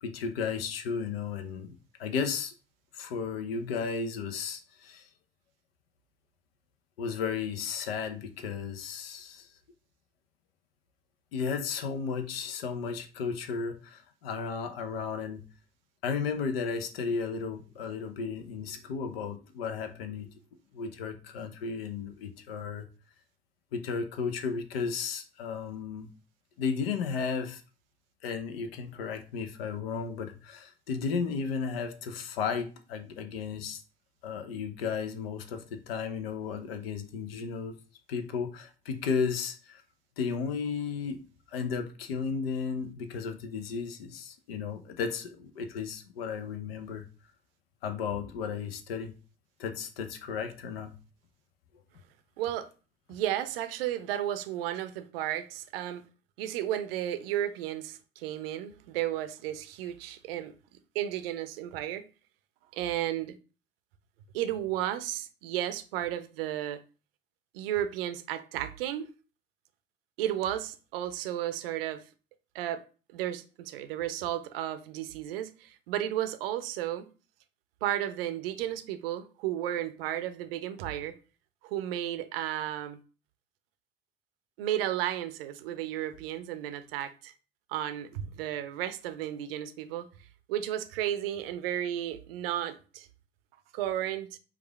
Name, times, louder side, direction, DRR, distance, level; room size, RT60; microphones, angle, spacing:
voice 1, 0.0-1.7 2.0-2.5 2.9-5.1 7.0-9.5 11.3-15.4 16.0-20.3 20.7-22.9 23.7-26.1 26.6-27.6 28.2-33.8 34.2-37.8 38.1-39.8 40.2-41.2 41.5-47.1 47.8-49.1 49.6-50.9, left 5 dB, 70° left, 0.7 m, -34 dB
voice 2, 52.4-52.7 53.1-56.0 56.4-60.5 60.9-62.0 62.7-63.3 64.3-66.8 67.5-69.1 70.2-72.0 72.5-72.8 73.1-77.1 77.8-81.2 81.6-83.0 84.6-87.3 87.7-90.1 90.5-93.1 93.7-94.4, right 12 dB, 70° right, 0.6 m, -33 dB
4.8 x 2.4 x 3.3 m
figure-of-eight pair, 60°, 31 cm